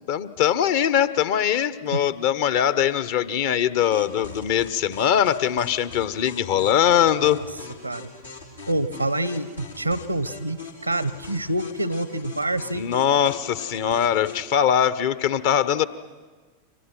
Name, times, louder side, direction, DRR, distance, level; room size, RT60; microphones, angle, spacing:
voice 1, 0.1-7.4 12.7-15.9, left 9 dB, 50° left, 15 dB, 1.0 m, -22 dB
sound 1, 3.9-14.5, left 4 dB, 85° left, 3.7 m, -42 dB
voice 2, 8.7-12.9, right 1 dB, 85° right, 16 dB, 0.9 m, -27 dB
29.5 x 25.0 x 6.1 m, 1.4 s
figure-of-eight pair, 90°, 0 cm